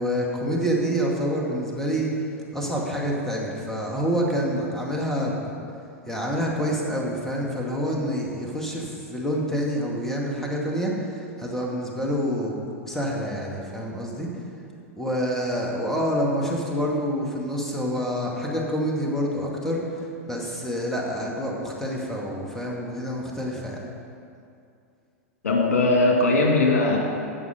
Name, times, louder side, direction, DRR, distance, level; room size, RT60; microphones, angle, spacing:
voice 1, 0.0-2.1 2.5-5.5 6.1-12.6 12.8-14.3 15.0-23.8, equal, 5° left, -2 dB, 2.0 m, -27 dB
voice 2, 25.4-27.0, left 2 dB, 75° left, 0 dB, 2.0 m, -19 dB
17.5 x 6.2 x 5.1 m, 2.5 s
figure-of-eight pair, 95°, 8 cm